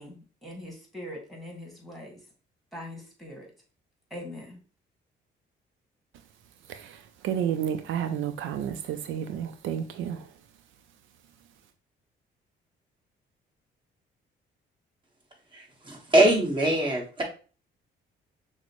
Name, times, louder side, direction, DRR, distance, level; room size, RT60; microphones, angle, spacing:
voice 1, 0.0-2.2 2.7-3.5 4.1-4.6, left 1 dB, ahead, 1.7 m, -42 dB
voice 2, 6.7-10.3, right 9 dB, 80° right, 0.4 m, -31 dB
voice 3, 15.5-17.2, right 1 dB, 25° right, 1.4 m, -23 dB
6.0 x 2.0 x 3.0 m
cardioid pair, 90°, 20 cm